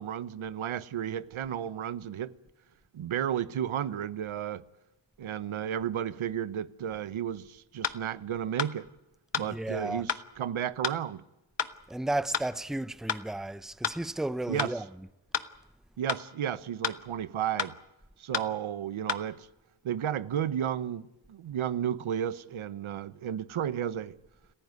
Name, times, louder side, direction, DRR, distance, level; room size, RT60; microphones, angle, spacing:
voice 1, 0.0-2.3 2.9-4.6 5.2-8.9 9.3-11.2 14.5-14.7 16.0-17.8 18.2-19.5 19.8-24.1, right 9 dB, 85° right, 1.0 m, -33 dB
sound 1, 7.8-8.0 8.6-8.7 9.3-9.5 10.1-10.2 10.8-11.0 11.6-11.7 12.3-12.5 13.1-13.2 13.8-14.0 14.6-14.7 15.3-15.5 16.1-16.2 16.8-17.0 17.6-17.7 18.3-18.5 19.1-19.2, left 7 dB, 60° left, 1.5 m, -31 dB
voice 2, 9.4-10.1 11.9-15.1, right 1 dB, ahead, 0.8 m, -33 dB
27.5 x 15.0 x 9.6 m
cardioid pair, 60°, 47 cm